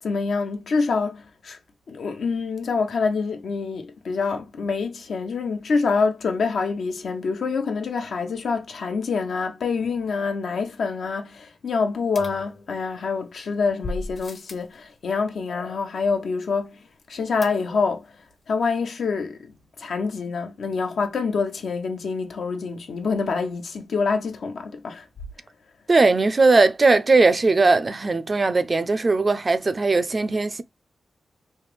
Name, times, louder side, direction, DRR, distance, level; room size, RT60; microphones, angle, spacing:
voice 1, 0.0-1.6 1.9-18.2 18.5-25.1, left 4 dB, 80° left, 0.8 m, -26 dB
sound 1, 12.2-13.1 13.8-14.8 17.4-18.0 18.3-18.4 18.6-18.7, left 2 dB, 55° left, 0.8 m, -36 dB
voice 2, 25.9-30.6, right 3 dB, 45° right, 0.4 m, -19 dB
3.2 x 2.4 x 3.3 m
cardioid pair, 55°, 0 cm